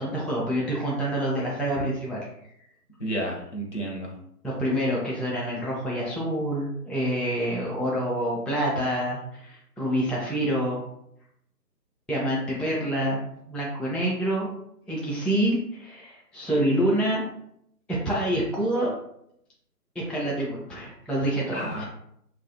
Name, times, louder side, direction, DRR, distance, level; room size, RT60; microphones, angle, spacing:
voice 1, 0.0-2.3 4.4-10.8 12.1-14.5 14.9-17.2 18.0-18.9 20.0-21.8, right 1 dB, ahead, -6 dB, 0.3 m, -27 dB
voice 2, 3.0-4.1 21.5-21.8, right 1 dB, 50° left, -1 dB, 0.6 m, -31 dB
2.6 x 2.3 x 2.6 m, 0.74 s
figure-of-eight pair, 160°, 48 cm